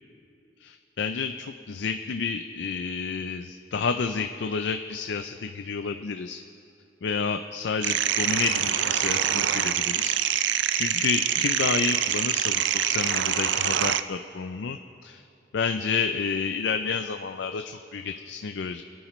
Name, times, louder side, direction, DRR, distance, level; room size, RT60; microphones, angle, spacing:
voice 1, 0.6-6.4 7.0-10.2 10.7-15.2 15.5-18.8, left 5 dB, 75° left, 8 dB, 0.4 m, -30 dB
sound 1, 7.8-14.0, right 10 dB, 80° right, 0.4 m, -25 dB
26.5 x 9.0 x 3.1 m, 2.8 s
head